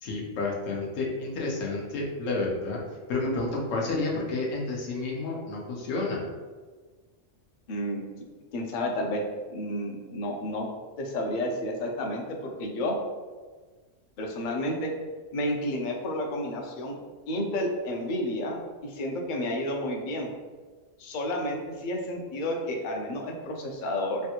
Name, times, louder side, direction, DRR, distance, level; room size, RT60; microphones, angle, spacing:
voice 1, 0.0-2.8 3.1-6.3, left 2 dB, 85° left, -2 dB, 1.1 m, -30 dB
voice 2, 7.7-8.0 8.5-9.2 9.5-10.7 11.0-13.0 14.2-14.9 15.3-17.0 17.3-20.3 21.0-24.2, left 1 dB, 60° left, 1 dB, 0.5 m, -31 dB
3.3 x 2.3 x 2.8 m, 1.4 s
omnidirectional pair, 1.3 m